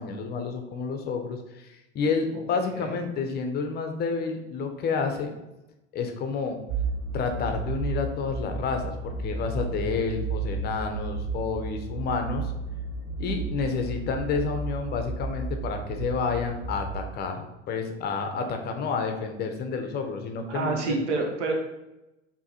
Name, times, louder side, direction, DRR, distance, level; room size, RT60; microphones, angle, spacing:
voice 1, 0.0-5.3 5.9-6.6 7.1-12.5 13.2-20.8, left 5 dB, 30° left, 5 dB, 0.5 m, -30 dB
sound 1, 6.7-16.9, right 3 dB, 55° right, 1.1 m, -33 dB
voice 2, 20.5-21.5, right 3 dB, 75° right, 1 dB, 0.9 m, -28 dB
4.7 x 2.8 x 2.7 m, 0.94 s
hypercardioid pair, 90°, 36 cm